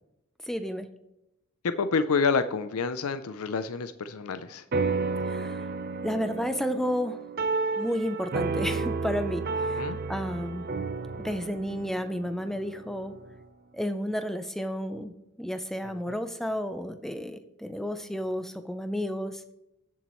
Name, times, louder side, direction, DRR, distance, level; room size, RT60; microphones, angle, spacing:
voice 1, 0.5-0.9 5.3-5.6 6.0-7.2 7.8-9.8 10.1-10.7 11.2-13.1 13.7-15.1 15.4-19.5, equal, ahead, 9 dB, 0.5 m, -31 dB
voice 2, 1.6-4.6 9.7-10.0 15.8-16.2, left 5 dB, 90° left, 11 dB, 0.6 m, -28 dB
sound 1, 4.7-13.4, right 4 dB, 45° right, 0.6 m, -32 dB
17.0 x 7.3 x 3.1 m, 0.88 s
head